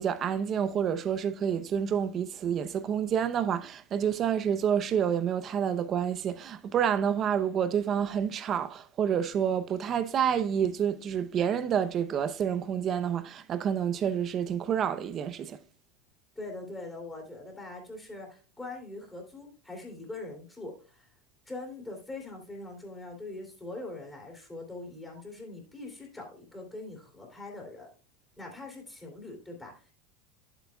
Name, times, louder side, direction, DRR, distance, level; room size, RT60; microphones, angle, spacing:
voice 1, 0.0-15.6, right 8 dB, 35° right, 0.7 m, -28 dB
voice 2, 16.3-21.1 21.5-27.9 28.4-29.8, left 2 dB, 10° left, 2.9 m, -42 dB
10.5 x 7.9 x 2.3 m
supercardioid pair, 130°, 0 cm